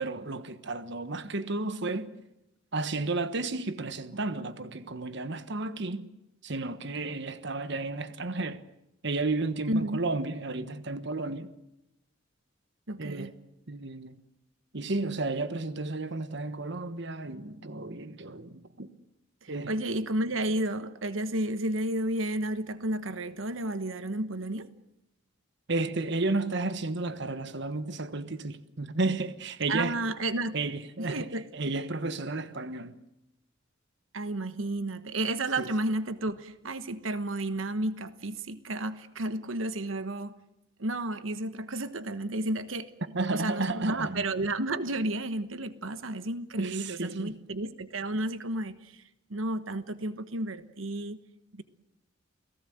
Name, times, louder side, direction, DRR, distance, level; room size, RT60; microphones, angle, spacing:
voice 1, 0.0-2.1 2.7-6.1 6.4-8.6 9.0-11.5 13.0-13.3 13.7-14.2 14.7-18.9 19.5-19.7 25.7-29.9 30.5-31.3 31.5-32.9 35.6-35.7 43.1-44.2 46.6-47.4, right 3 dB, 60° right, 1.3 m, -32 dB
voice 2, 9.7-10.0 12.9-13.3 19.4-24.7 29.7-30.6 31.0-31.5 34.1-40.4 40.8-42.9 43.3-49.0 49.3-51.2 51.5-51.6, right 1 dB, 85° right, 1.3 m, -32 dB
29.5 x 18.5 x 7.9 m
head